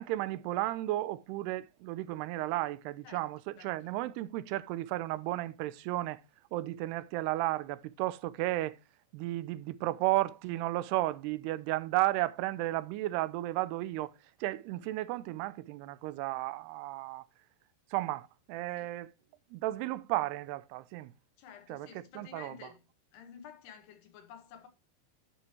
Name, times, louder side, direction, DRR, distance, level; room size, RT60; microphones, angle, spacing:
voice 1, 0.0-6.2 6.5-8.8 9.1-14.1 14.4-17.3 17.9-19.1 19.5-21.1 21.7-22.5, right 17 dB, 90° right, 2.7 m, -33 dB
voice 2, 3.6-4.0 18.8-18.9 21.4-22.8 23.1-24.7, left 7 dB, 85° left, 3.6 m, -52 dB
11.0 x 6.9 x 3.0 m
omnidirectional pair, 4.6 m